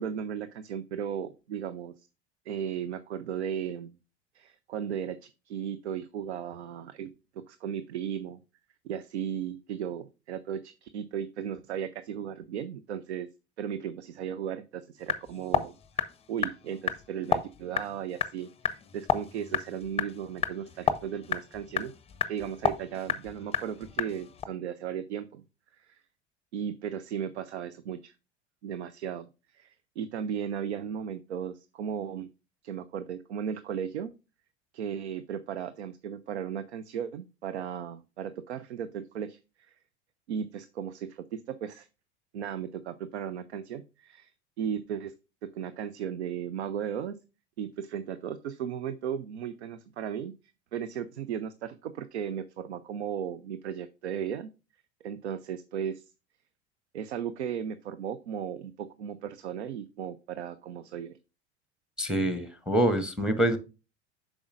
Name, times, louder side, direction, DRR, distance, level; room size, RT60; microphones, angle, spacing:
voice 1, 0.0-2.1 2.5-3.9 4.3-7.1 7.5-8.4 8.8-13.3 13.6-21.9 22.3-25.4 25.8-26.0 26.5-28.1 28.6-29.3 29.5-32.3 32.6-34.1 34.7-39.7 40.3-41.9 42.3-44.3 44.6-45.1 45.4-47.1 47.6-50.3 50.7-54.5 55.0-56.1 56.9-61.2, right 8 dB, 75° right, 13 dB, 0.6 m, -36 dB
sound 1, 15.0-24.4, left 6 dB, 20° left, 0.6 m, -32 dB
voice 2, 62.0-63.6, right 1 dB, ahead, 10 dB, 1.1 m, -25 dB
8.5 x 6.2 x 2.5 m, 0.29 s
figure-of-eight pair, 75°, 34 cm